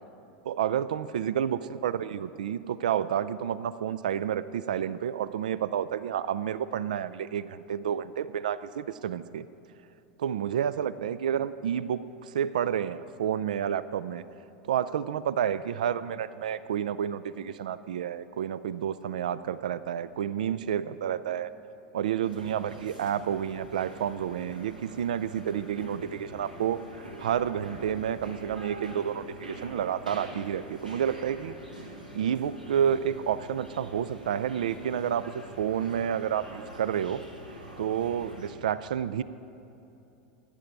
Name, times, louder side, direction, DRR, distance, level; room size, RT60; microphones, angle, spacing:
voice 1, 0.4-9.5 10.2-14.2 14.6-21.5 21.9-26.8 27.2-31.5 32.1-37.2 37.8-39.2, right 9 dB, 70° right, 16 dB, 0.3 m, -30 dB
sound 1, 22.2-38.5, equal, 90° right, 1.6 m, -45 dB
16.0 x 10.5 x 4.6 m, 2.9 s
figure-of-eight pair, 85°, 4 cm